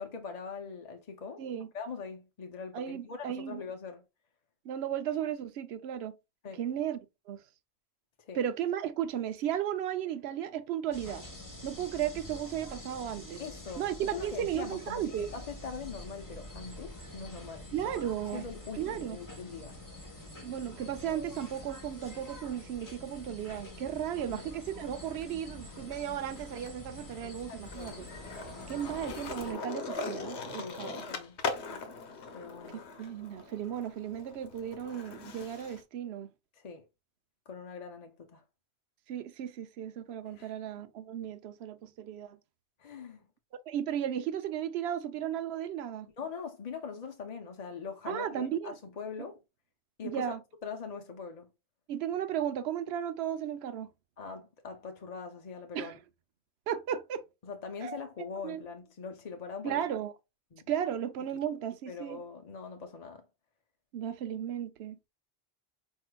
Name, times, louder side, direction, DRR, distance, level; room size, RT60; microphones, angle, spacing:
voice 1, 0.0-4.1 6.4-6.6 8.2-8.4 13.4-17.9 18.3-19.8 24.2-24.5 27.2-28.0 30.6-31.4 32.3-32.8 36.5-36.9 37.5-38.4 40.2-40.6 42.8-43.3 46.2-49.4 50.0-50.3 50.6-51.5 54.2-55.9 57.4-59.8 60.5-60.7 61.9-63.2, left 5 dB, 45° left, 0.6 m, -42 dB
voice 2, 2.7-3.6 4.6-6.1 6.6-7.0 7.3-7.4 8.3-11.2 11.6-13.4 13.8-15.3 17.7-18.4 18.8-19.2 20.4-28.1 28.7-31.0 33.0-36.3 39.1-42.4 43.7-46.1 48.1-48.7 49.2-49.3 50.0-50.4 51.9-53.9 55.7-55.9 56.7-57.2 57.8-58.0 58.4-58.6 59.6-60.1 60.7-62.2 63.9-65.1, right 10 dB, 75° right, 0.8 m, -35 dB
sound 1, 10.9-29.5, left 1 dB, 20° left, 1.1 m, -46 dB
Skateboard, 23.7-25.2 25.6-35.8, left 4 dB, 85° left, 1.1 m, -41 dB
4.7 x 4.5 x 2.2 m
omnidirectional pair, 1.1 m